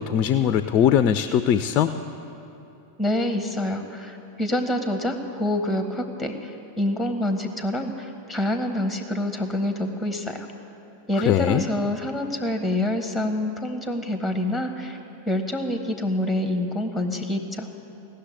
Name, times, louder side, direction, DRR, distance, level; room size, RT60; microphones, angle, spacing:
voice 1, 0.0-2.0 11.3-11.7, left 9 dB, 35° left, 11 dB, 0.4 m, -20 dB
voice 2, 3.0-10.5 11.1-15.0 15.3-17.7, left 1 dB, ahead, 6 dB, 1.0 m, -27 dB
16.5 x 6.7 x 9.3 m, 2.9 s
figure-of-eight pair, 90°, 0 cm